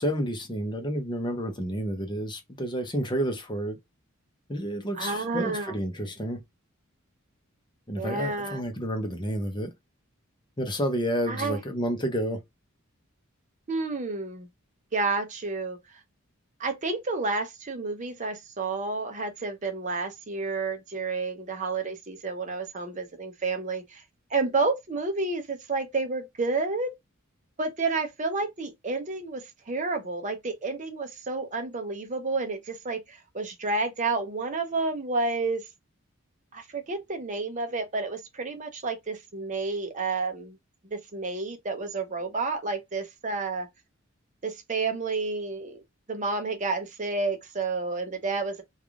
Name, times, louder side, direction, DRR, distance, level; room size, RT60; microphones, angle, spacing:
voice 1, 0.0-3.8 4.5-6.4 7.9-9.7 10.6-12.4, equal, 20° left, 0.7 m, -30 dB
voice 2, 4.9-5.8 8.0-8.6 11.3-11.6 13.7-14.5 14.9-15.8 16.6-24.0 24.3-26.9 27.6-35.6 36.5-40.6 40.9-43.7 44.4-45.8 46.1-48.6, right 3 dB, 35° right, 0.6 m, -30 dB
3.3 x 2.4 x 3.5 m
head